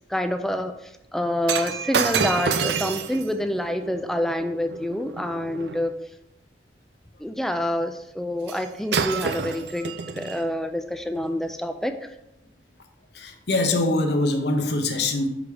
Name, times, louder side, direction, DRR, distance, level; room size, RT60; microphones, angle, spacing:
voice 1, 0.1-5.9 7.2-12.0, left 1 dB, ahead, 7 dB, 0.3 m, -27 dB
Shatter, 1.4-5.8 8.5-8.6 8.9-10.4 11.2-11.3, right 6 dB, 65° right, 0.4 m, -28 dB
voice 2, 13.1-15.3, left 2 dB, 65° left, 5 dB, 0.8 m, -23 dB
6.4 x 5.0 x 3.5 m, 0.85 s
head